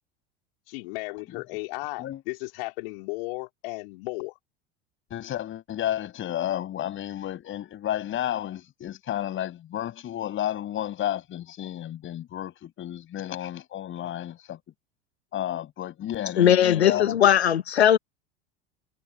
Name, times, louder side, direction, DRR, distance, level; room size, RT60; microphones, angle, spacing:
voice 1, 0.7-4.3, left 26 dB, 60° left, 3.6 m, -35 dB
voice 2, 5.1-14.6 15.3-17.2, left 12 dB, 40° left, 7.7 m, -32 dB
voice 3, 16.4-18.0, left 10 dB, 75° left, 1.9 m, -19 dB
figure-of-eight pair, 80°, 32 cm